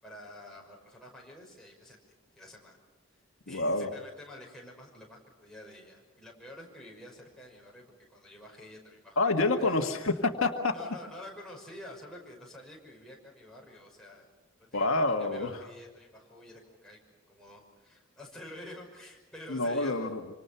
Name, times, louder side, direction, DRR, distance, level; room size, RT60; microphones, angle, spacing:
voice 1, 0.0-2.8 3.1-9.3 9.5-9.9 10.7-14.3 14.6-17.0 17.3-20.1, left 1 dB, 5° left, -2 dB, 5.9 m, -49 dB
voice 2, 3.5-3.9 9.2-10.7 14.7-15.6 19.5-20.3, left 2 dB, 75° left, 4 dB, 1.8 m, -27 dB
26.5 x 26.0 x 6.0 m, 1.3 s
head